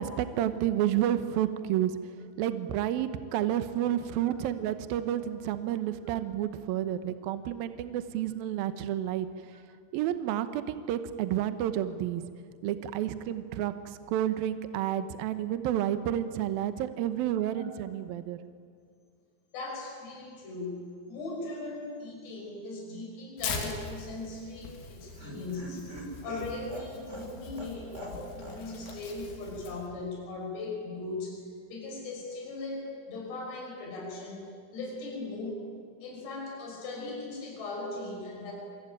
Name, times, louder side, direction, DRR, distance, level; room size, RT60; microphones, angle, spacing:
voice 1, 0.0-1.9 2.4-9.3 9.9-12.2 12.6-13.7 14.1-18.4, right 11 dB, 75° right, 10 dB, 2.2 m, -30 dB
voice 2, 19.5-25.9 26.2-31.4 31.7-34.4 34.7-35.6 36.0-38.5, left 2 dB, 60° left, -1 dB, 8.0 m, -39 dB
Tearing, 23.4-29.9, left 5 dB, 85° left, 5.3 m, -42 dB
Laughter, 24.6-28.6 28.9-29.0 29.3-29.4, right 2 dB, 20° right, 2.7 m, -44 dB
26.5 x 23.5 x 9.1 m, 2.1 s
omnidirectional pair, 5.4 m